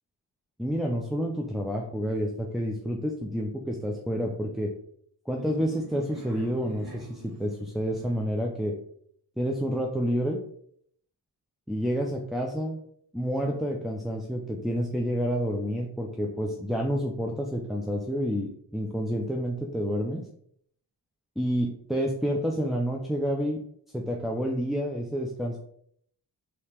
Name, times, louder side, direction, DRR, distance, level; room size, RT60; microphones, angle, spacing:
voice 1, 0.6-4.7 5.3-8.8 9.4-10.4 11.7-12.8 13.1-20.2 21.4-23.6 23.9-25.6, equal, ahead, 0 dB, 0.3 m, -29 dB
sound 1, 5.3-8.4, right 3 dB, 55° right, 1.3 m, -48 dB
3.4 x 2.8 x 4.3 m, 0.67 s
cardioid pair, 100°, 42 cm